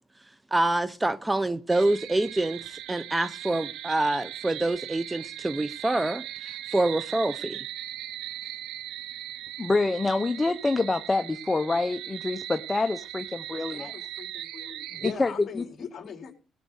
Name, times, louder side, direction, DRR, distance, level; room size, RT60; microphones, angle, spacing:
voice 1, 0.5-6.2 6.7-7.6, right 2 dB, 15° right, 0.9 m, -26 dB
sound 1, 1.7-15.1, right 13 dB, 90° right, 0.5 m, -39 dB
voice 2, 9.6-13.9 15.0-15.6, left 3 dB, 20° left, 1.0 m, -26 dB
voice 3, 13.5-16.3, left 7 dB, 50° left, 3.9 m, -40 dB
17.5 x 6.7 x 6.6 m
cardioid pair, 90°, 0 cm